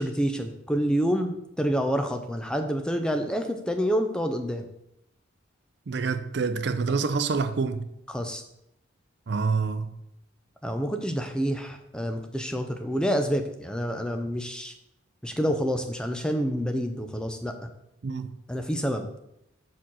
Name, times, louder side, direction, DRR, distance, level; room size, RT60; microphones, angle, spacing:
voice 1, 0.0-4.7 6.9-7.0 8.1-8.4 10.6-14.7 15.2-17.5 18.5-19.1, equal, 5° left, 0.5 m, -28 dB
voice 2, 5.9-7.9 9.3-10.0 18.0-18.3, right 4 dB, 55° right, 0.5 m, -27 dB
5.6 x 4.5 x 6.2 m
head